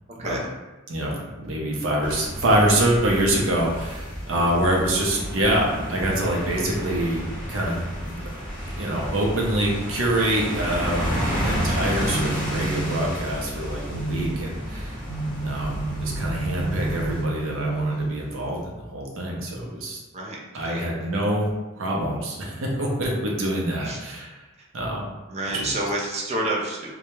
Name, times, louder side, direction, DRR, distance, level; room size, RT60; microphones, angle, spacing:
voice 1, 0.1-0.5 20.1-20.8 23.8-24.1 25.3-27.0, right 1 dB, 30° right, -3 dB, 0.4 m, -29 dB
voice 2, 0.9-7.2 7.5-8.2 8.8-15.0 15.4-20.0 20.5-21.5 21.8-24.3 24.7-25.1 25.5-25.7, right 1 dB, 75° right, -2 dB, 0.6 m, -25 dB
sound 1, 2.0-17.2, equal, 5° left, 0.9 m, -31 dB
sound 2, 11.8-18.7, right 2 dB, 65° left, 0.6 m, -31 dB
2.2 x 2.0 x 2.9 m, 1.1 s
head